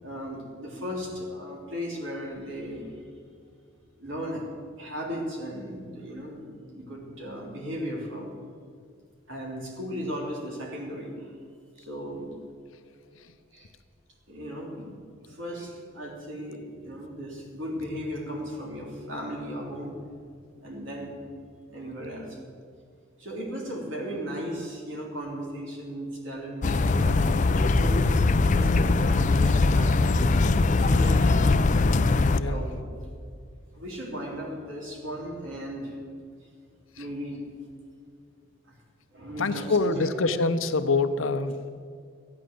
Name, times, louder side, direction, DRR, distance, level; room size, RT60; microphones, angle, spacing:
voice 1, 0.0-2.9 4.0-4.5 4.8-8.3 9.3-11.3 11.8-12.3 13.5-13.7 14.3-14.9 15.2-20.0 20.6-21.2 21.7-22.4 23.2-28.2 28.5-30.2 30.8-31.6 32.4-32.8 33.7-36.0 36.4-36.5 37.0-37.5 38.7-38.8 39.1-40.3, equal, 70° right, -2 dB, 3.6 m, -36 dB
sound 1, 26.6-32.4, left 3 dB, 40° left, 0.5 m, -21 dB
voice 2, 39.4-41.7, left 3 dB, 85° left, 10 dB, 0.8 m, -25 dB
14.0 x 9.6 x 7.7 m, 2.2 s
head